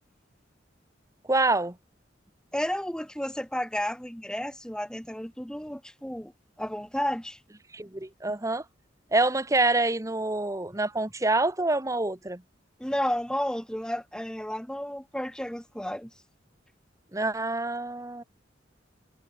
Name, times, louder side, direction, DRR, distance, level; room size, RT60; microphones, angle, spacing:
voice 1, 1.3-1.7 7.7-8.6 9.1-12.4 17.1-18.2, right 2 dB, 15° right, 1.2 m, -26 dB
voice 2, 2.5-6.3 6.6-7.4 12.8-16.1, equal, 5° left, 1.6 m, -32 dB
head